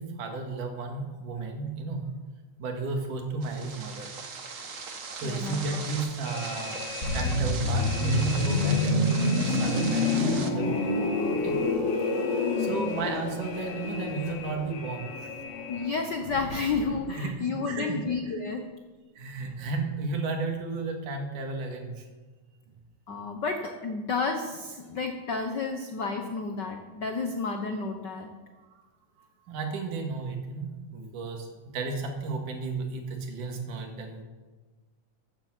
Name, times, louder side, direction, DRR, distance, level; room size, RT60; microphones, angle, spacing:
voice 1, 0.0-2.0 2.6-4.1 4.9-6.8 7.1-11.0 11.3-11.6 12.0-15.1 17.2-18.0 18.3-18.4 19.2-22.0 22.7-22.8 28.7-28.8 29.4-34.2, right 3 dB, 90° right, 3 dB, 3.4 m, -33 dB
sound 1, 3.4-10.5, right 4 dB, 75° right, 0.7 m, -39 dB
voice 2, 5.2-5.8 12.4-13.0 15.7-18.7 23.1-28.3, left 4 dB, 80° left, 4 dB, 0.9 m, -31 dB
sound 2, 6.2-17.0, left 5 dB, 55° left, 1.3 m, -41 dB
sound 3, 7.0-16.7 16.9-17.2, left 2 dB, 35° left, 1.3 m, -28 dB
15.0 x 8.8 x 7.5 m, 1.3 s
omnidirectional pair, 3.5 m